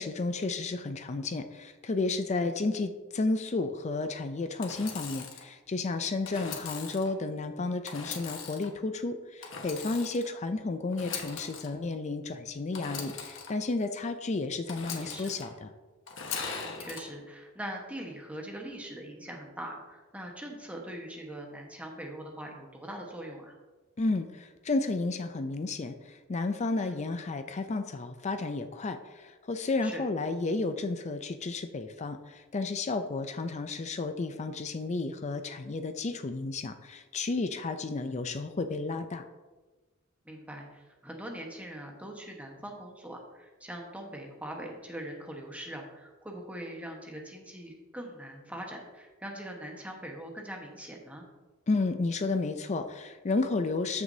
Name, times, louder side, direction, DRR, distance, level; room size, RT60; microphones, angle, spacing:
voice 1, 0.0-15.7 24.0-39.2 51.7-54.0, left 3 dB, 35° left, 8 dB, 0.4 m, -32 dB
Engine / Sawing, 4.6-5.4 6.2-7.1 7.9-8.7 9.4-10.3 10.9-11.7 12.7-13.5 14.7-15.5 16.1-17.0, left 5 dB, 70° left, 1.3 m, -39 dB
voice 2, 6.3-6.7 15.0-15.3 16.8-23.5 26.8-27.0 29.8-30.0 40.2-51.3, right 1 dB, 5° right, 0 dB, 1.2 m, -42 dB
13.5 x 6.1 x 2.7 m, 1.3 s
head